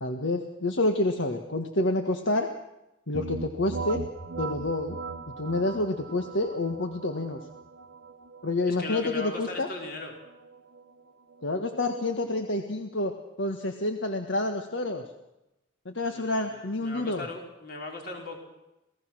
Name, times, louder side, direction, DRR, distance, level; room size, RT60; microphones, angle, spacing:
voice 1, 0.0-2.5 3.1-4.0 4.4-5.0 5.3-7.4 8.4-9.7 11.4-13.1 13.4-15.0 15.8-17.3, left 2 dB, 70° left, 5 dB, 1.6 m, -28 dB
sound 1, 3.1-12.7, right 4 dB, 75° right, 1.0 m, -40 dB
voice 2, 8.6-10.1 16.0-18.4, left 3 dB, 50° left, 1 dB, 5.2 m, -38 dB
28.0 x 18.0 x 6.3 m, 0.93 s
head